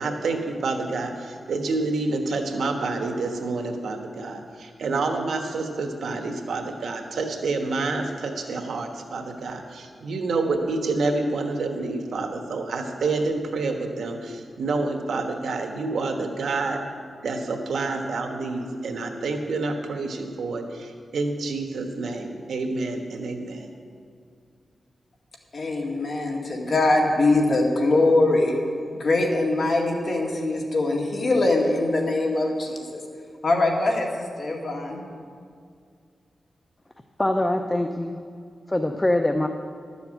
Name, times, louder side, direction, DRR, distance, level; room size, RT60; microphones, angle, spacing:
voice 1, 0.0-16.8 17.2-23.7, right 3 dB, 85° right, 4 dB, 1.3 m, -28 dB
voice 2, 25.5-28.6 28.9-33.0 33.4-35.1, left 2 dB, 50° left, 0 dB, 2.0 m, -22 dB
voice 3, 37.2-38.2 38.7-39.5, left 1 dB, 15° left, 6 dB, 0.6 m, -23 dB
12.0 x 7.0 x 7.9 m, 2.2 s
cardioid pair, 85°, 0 cm